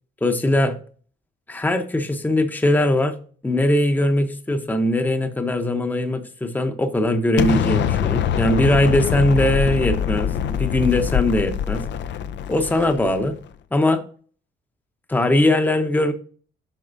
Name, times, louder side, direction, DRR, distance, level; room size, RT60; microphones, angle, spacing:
voice 1, 0.2-0.7 1.5-3.1 3.4-11.8 12.5-13.4 13.7-14.0 15.1-16.1, left 1 dB, 10° left, 8 dB, 0.8 m, -20 dB
Explosion, 7.4-13.4, left 9 dB, 65° left, 0.5 m, -24 dB
7.9 x 4.9 x 2.6 m, 0.43 s
cardioid pair, 90°, 20 cm